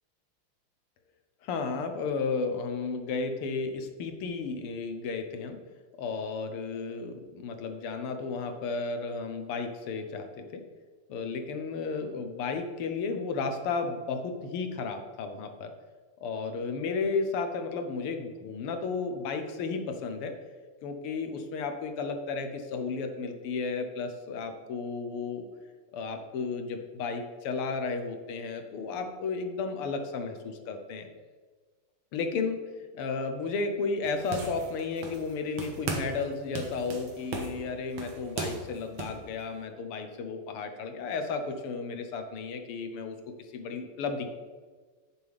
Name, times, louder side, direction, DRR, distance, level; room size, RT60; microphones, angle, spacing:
voice 1, 1.4-5.6 6.0-10.6 11.1-15.7 16.2-20.3 20.8-25.5 25.9-31.1 32.1-32.6 32.9-44.3, left 4 dB, 85° left, 6 dB, 1.9 m, -33 dB
sound 1, 34.0-35.3 35.6-36.2 36.5-39.2, right 4 dB, 70° right, 2.0 m, -37 dB
10.5 x 7.4 x 3.5 m, 1.4 s
omnidirectional pair, 2.4 m